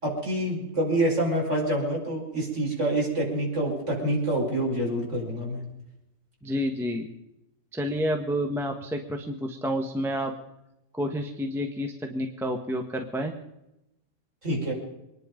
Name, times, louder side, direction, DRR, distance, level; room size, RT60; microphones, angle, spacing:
voice 1, 0.0-5.6 14.4-14.7, right 1 dB, 45° right, -2 dB, 5.8 m, -27 dB
voice 2, 6.4-7.1 7.7-10.3 10.9-13.3, equal, ahead, 3 dB, 1.3 m, -29 dB
25.0 x 10.5 x 5.3 m, 0.88 s
omnidirectional pair, 1.8 m